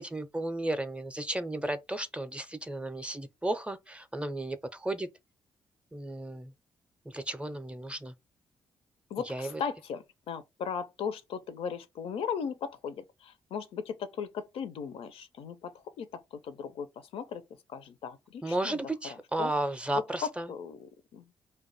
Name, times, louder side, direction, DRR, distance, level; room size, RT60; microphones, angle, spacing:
voice 1, 0.0-5.1 5.9-6.5 7.1-8.1 9.3-9.6 18.4-20.5, right 1 dB, 10° right, 0.4 m, -34 dB
voice 2, 9.1-17.4 17.7-19.5 20.2-21.2, left 7 dB, 60° left, 0.4 m, -37 dB
2.5 x 2.2 x 4.0 m
hypercardioid pair, 40°, 11 cm